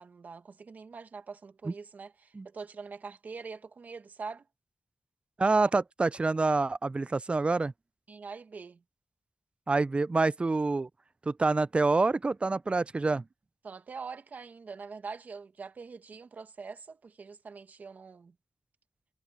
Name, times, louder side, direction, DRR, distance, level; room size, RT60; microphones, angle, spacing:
voice 1, 0.0-4.4 8.1-8.8 13.6-18.3, right 5 dB, 75° right, 1.6 m, -44 dB
voice 2, 5.4-7.7 9.7-10.9 11.3-13.2, right 3 dB, 40° right, 0.4 m, -27 dB
cardioid pair, 40°, 3 cm